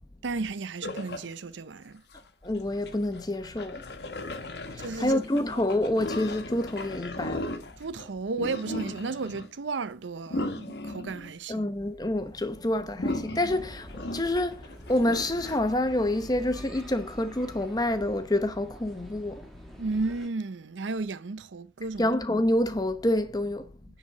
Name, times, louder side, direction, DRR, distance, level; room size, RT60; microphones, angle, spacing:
voice 1, 0.2-2.0 4.8-5.2 7.8-11.6 19.8-22.1, right 3 dB, 75° right, 0.6 m, -33 dB
sound 1, 0.8-1.3 2.1-2.2 2.9-8.1 8.4-9.5 10.3-11.7 13.0-15.6, left 2 dB, 60° left, 1.2 m, -36 dB
voice 2, 2.4-3.8 4.4-7.5 11.5-19.5 22.0-23.7, left 1 dB, 20° left, 0.9 m, -28 dB
sound 2, 13.5-20.3, equal, ahead, 1.9 m, -47 dB
10.0 x 4.2 x 7.2 m
head